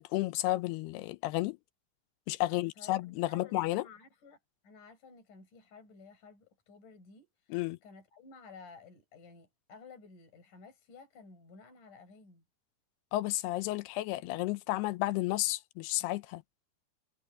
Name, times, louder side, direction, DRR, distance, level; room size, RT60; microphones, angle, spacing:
voice 1, 0.0-1.6 2.3-3.8 7.5-7.8 13.1-16.4, left 17 dB, 80° left, 2.6 m, -32 dB
voice 2, 2.4-4.4 4.6-12.4, left 4 dB, 50° left, 7.9 m, -54 dB
omnidirectional pair, 4.8 m